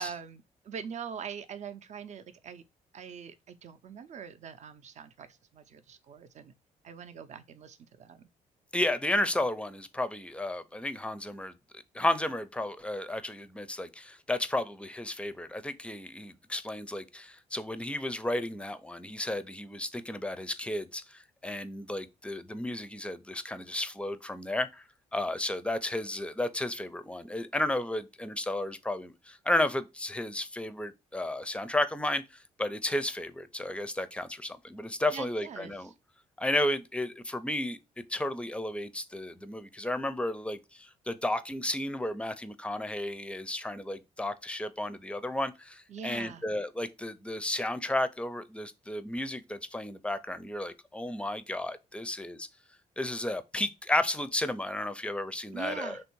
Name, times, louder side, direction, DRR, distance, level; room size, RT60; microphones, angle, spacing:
voice 1, 0.0-2.6 2.9-6.5 6.8-8.3 35.1-35.9 45.9-46.4 55.5-56.0, right 7 dB, 50° right, 0.5 m, -43 dB
voice 2, 8.7-24.8 25.1-32.2 32.6-35.9 36.4-37.8 38.1-52.5 53.0-56.0, left 1 dB, 5° left, 0.4 m, -33 dB
3.2 x 2.6 x 4.5 m
supercardioid pair, 65°, 15 cm